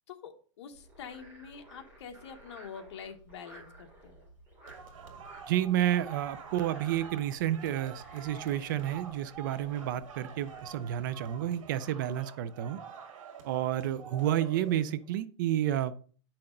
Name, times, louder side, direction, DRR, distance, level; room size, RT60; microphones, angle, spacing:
voice 1, 0.1-4.2, left 7 dB, 60° left, 5 dB, 1.3 m, -46 dB
Frog, 0.7-11.0, right 1 dB, 15° right, 3.3 m, -55 dB
sound 1, 4.7-15.1, right 7 dB, 90° right, 1.9 m, -47 dB
voice 2, 5.5-12.8 13.4-15.9, right 11 dB, 40° right, 16 dB, 0.4 m, -30 dB
9.9 x 5.8 x 3.8 m, 0.42 s
supercardioid pair, 170°, 16 cm